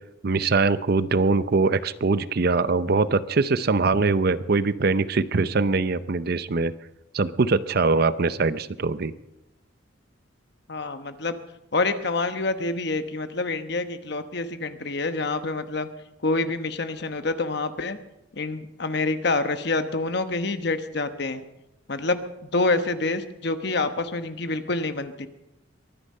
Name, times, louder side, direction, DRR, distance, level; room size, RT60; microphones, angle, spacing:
voice 1, 0.2-6.7 7.1-9.1, right 3 dB, 50° right, 15 dB, 0.6 m, -22 dB
voice 2, 10.7-11.4 11.7-15.9 16.2-18.0 18.4-21.4 21.9-25.3, left 3 dB, 60° left, 9 dB, 1.1 m, -27 dB
23.0 x 9.9 x 5.5 m, 0.92 s
head